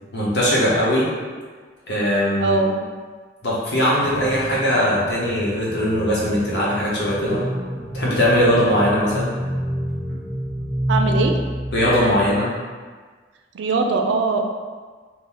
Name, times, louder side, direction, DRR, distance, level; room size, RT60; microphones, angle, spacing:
voice 1, 0.1-1.1 1.9-2.6 3.4-7.5 7.9-9.4 11.7-12.5, equal, 65° left, -7 dB, 0.9 m, -20 dB
voice 2, 2.4-2.8 10.9-11.3 13.5-14.5, right 3 dB, 85° right, 3 dB, 0.4 m, -20 dB
sound 1, 4.0-11.4, left 1 dB, ahead, 1.1 m, -35 dB
sound 2, 7.0-12.4, equal, 25° left, 0.7 m, -27 dB
3.8 x 2.2 x 4.3 m, 1.5 s
head